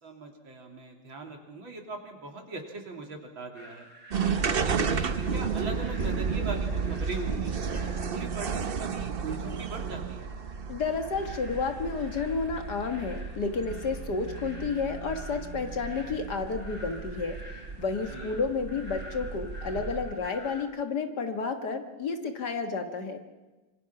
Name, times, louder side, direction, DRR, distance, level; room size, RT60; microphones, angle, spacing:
voice 1, 0.0-3.9 4.4-7.7 8.1-10.3 18.1-18.4, right 3 dB, 70° right, 2 dB, 3.8 m, -40 dB
sound 1, 3.5-20.6, equal, 15° left, 4.5 m, -50 dB
sound 2, 4.1-20.3, right 5 dB, 50° right, 0.6 m, -33 dB
voice 2, 10.7-23.2, left 4 dB, 55° left, 6 dB, 2.1 m, -31 dB
26.0 x 24.5 x 5.9 m, 1.1 s
omnidirectional pair, 2.2 m